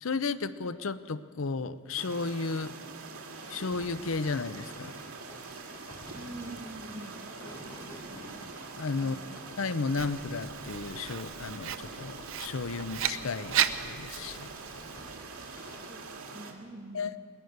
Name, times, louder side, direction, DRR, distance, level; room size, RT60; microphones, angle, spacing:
voice 1, 0.0-2.7 3.5-4.9 8.8-9.2 9.6-14.5 16.9-17.1, left 4 dB, 70° left, 14 dB, 0.7 m, -33 dB
sound 1, 2.0-16.5, right 4 dB, 85° right, 2.3 m, -44 dB
sound 2, 3.4-15.9, equal, 25° left, 6.2 m, -51 dB
voice 2, 6.2-7.2 9.0-9.4 15.9-17.3, right 1 dB, 35° right, 2 dB, 2.3 m, -45 dB
Writing, 10.0-14.9, right 9 dB, 65° right, 0.8 m, -35 dB
22.0 x 19.0 x 6.6 m, 2.3 s
head